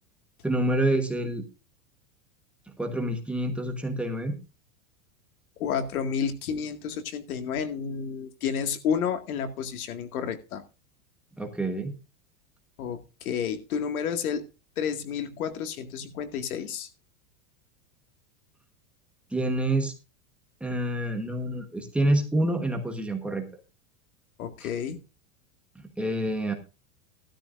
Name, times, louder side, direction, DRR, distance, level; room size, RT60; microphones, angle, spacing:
voice 1, 0.4-1.4 2.8-4.4 11.4-11.9 19.3-19.9 20.6-23.5 24.6-24.7 26.0-26.5, right 1 dB, 5° right, 3 dB, 1.2 m, -27 dB
voice 2, 5.6-10.6 12.8-14.4 14.8-16.9 24.4-25.0, left 7 dB, 85° left, 8 dB, 2.1 m, -30 dB
16.0 x 12.5 x 2.6 m, 0.31 s
supercardioid pair, 170°, 42 cm